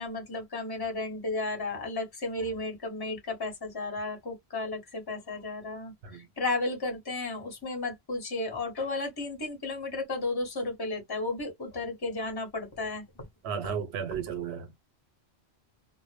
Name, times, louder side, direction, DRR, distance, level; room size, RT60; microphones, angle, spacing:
voice 1, 0.0-13.0, left 2 dB, 25° left, 0.9 m, -33 dB
voice 2, 13.4-14.7, right 7 dB, 80° right, 0.9 m, -34 dB
2.1 x 2.0 x 3.1 m
omnidirectional pair, 1.1 m